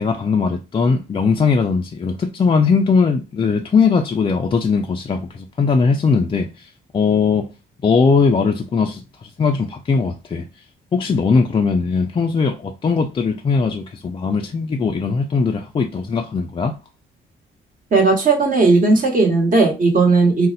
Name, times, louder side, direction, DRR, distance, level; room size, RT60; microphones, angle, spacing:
voice 1, 0.0-7.5 7.8-10.5 10.9-16.7, left 5 dB, 25° left, 0.3 m, -19 dB
voice 2, 17.9-20.5, right 3 dB, 40° right, 1.2 m, -15 dB
2.6 x 2.0 x 3.9 m
cardioid pair, 90°, 20 cm